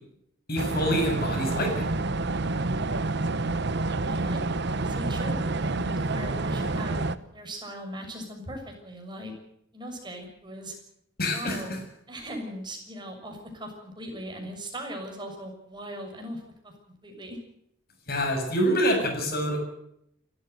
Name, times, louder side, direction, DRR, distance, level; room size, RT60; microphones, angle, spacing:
voice 1, 0.5-1.9 11.2-11.6 18.1-19.6, equal, 55° left, 2 dB, 7.4 m, -26 dB
sound 1, 0.6-7.2, right 3 dB, 60° right, 1.1 m, -28 dB
voice 2, 4.0-4.4 4.6-9.3 9.7-10.7 11.3-11.8 12.1-16.7 17.0-17.4, equal, 25° right, 3 dB, 6.7 m, -39 dB
28.0 x 13.5 x 8.1 m, 0.75 s
head